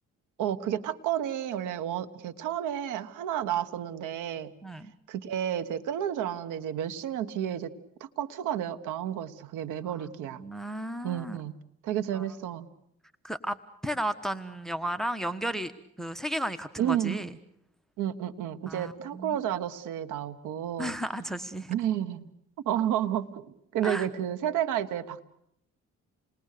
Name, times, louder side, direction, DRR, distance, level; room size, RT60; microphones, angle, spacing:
voice 1, 0.4-4.5 5.1-7.7 8.0-10.4 11.0-11.5 11.8-12.7 16.8-17.2 18.0-21.0 21.7-22.3 22.6-23.4 23.7-25.3, right 10 dB, 90° right, 9 dB, 1.5 m, -31 dB
voice 2, 10.4-11.4 12.1-12.2 13.2-13.6 13.8-15.7 16.0-17.3 18.7-19.4 20.8-21.7 23.8-24.1, right 1 dB, ahead, 11 dB, 1.3 m, -33 dB
29.0 x 20.5 x 6.7 m, 0.73 s
cardioid pair, 90°, 30 cm